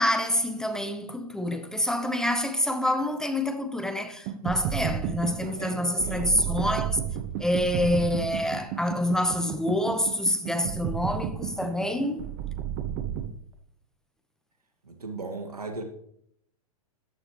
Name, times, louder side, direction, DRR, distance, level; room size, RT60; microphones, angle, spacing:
voice 1, 0.0-7.0 7.4-12.2, left 1 dB, 5° left, 0.9 m, -27 dB
sound 1, 4.3-13.3, right 9 dB, 35° right, 1.0 m, -32 dB
voice 2, 5.5-6.5 14.8-15.8, right 3 dB, 80° right, 2.3 m, -37 dB
14.0 x 12.0 x 3.3 m
figure-of-eight pair, 105°, 19 cm